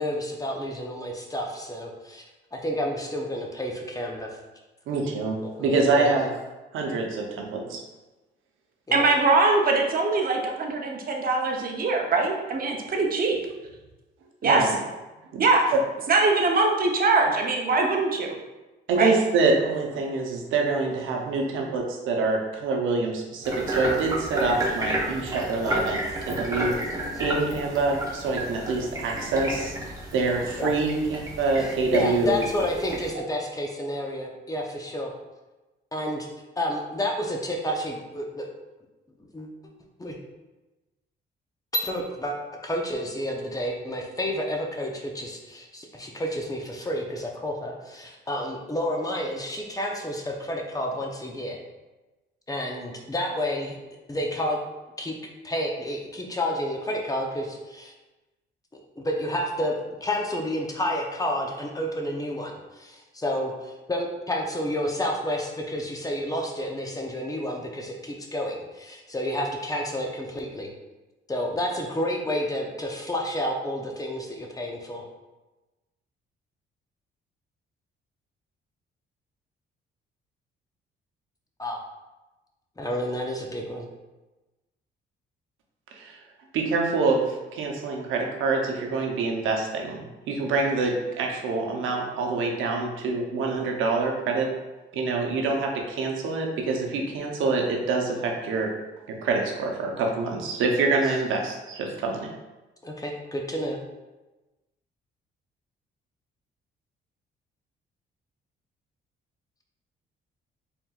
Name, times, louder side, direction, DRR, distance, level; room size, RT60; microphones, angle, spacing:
voice 1, 0.0-2.2 2.5-4.3 5.4-5.6 5.9-6.1 8.9-9.1 30.6-30.7 31.9-35.1 35.9-36.3 36.6-38.5 39.2-39.5 40.0-40.2 41.7-42.4 42.6-51.6 52.5-53.8 54.1-54.6 55.0-55.1 55.4-57.9 59.0-59.7 60.0-70.7 71.3-75.0 81.6-81.8 82.8-83.9 102.8-103.8, left 1 dB, 15° left, 0 dB, 0.7 m, -30 dB
voice 2, 4.9-6.3 6.7-7.8 14.4-14.7 15.3-15.4 15.7-15.8 18.9-26.0 26.3-26.7 27.2-29.7 30.1-32.4 85.9-86.2 86.5-94.5 94.9-98.7 99.2-102.3, right 3 dB, 85° right, 1 dB, 0.8 m, -26 dB
voice 3, 8.9-13.4 14.4-14.7 15.4-15.6 16.1-18.3 19.0-19.2, right 3 dB, 45° right, 1 dB, 0.8 m, -22 dB
sound 1, 23.4-33.1, right 1 dB, 15° right, 1.0 m, -31 dB
4.3 x 3.5 x 2.4 m, 1.1 s
cardioid pair, 90°, 20 cm